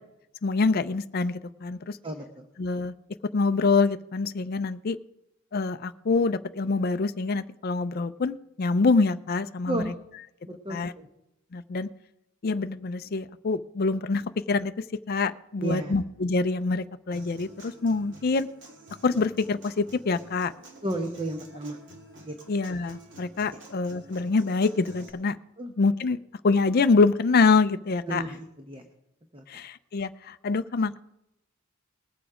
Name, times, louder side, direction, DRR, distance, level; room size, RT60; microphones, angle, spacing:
voice 1, 0.4-2.0 2.6-2.9 3.3-5.0 5.5-9.8 10.7-10.9 11.5-11.9 12.4-14.7 15.1-18.5 19.0-20.5 22.5-25.4 25.8-26.2 26.4-28.2 29.5-31.0, left 4 dB, 40° left, 11 dB, 0.4 m, -25 dB
voice 2, 2.0-2.5 9.6-10.0 10.5-11.1 15.6-16.0 20.8-21.8 22.3-22.4 25.6-25.7 28.1-28.8 29.3-29.4, right 1 dB, 25° right, 5 dB, 0.9 m, -32 dB
Human voice / Acoustic guitar, 17.1-25.1, right 2 dB, 55° right, 2.2 m, -49 dB
20.0 x 7.1 x 4.9 m, 0.86 s
head